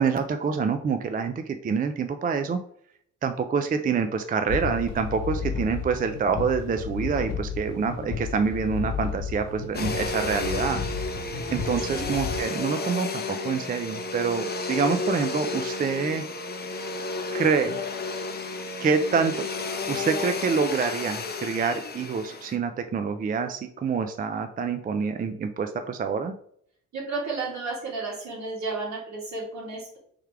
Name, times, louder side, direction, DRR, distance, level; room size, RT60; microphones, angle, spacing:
voice 1, 0.0-2.6 3.2-10.8 11.5-16.2 17.3-17.8 18.8-19.5 19.9-26.3, right 5 dB, 30° right, 8 dB, 0.4 m, -26 dB
sound 1, 4.5-12.4, left 6 dB, 55° left, 1.3 m, -33 dB
Domestic sounds home sounds, 9.7-22.6, left 3 dB, 35° left, 0.7 m, -32 dB
voice 2, 11.8-12.1 26.9-30.0, right 3 dB, 65° right, -2 dB, 2.0 m, -32 dB
3.6 x 3.3 x 4.5 m, 0.66 s
cardioid pair, 90°, 30 cm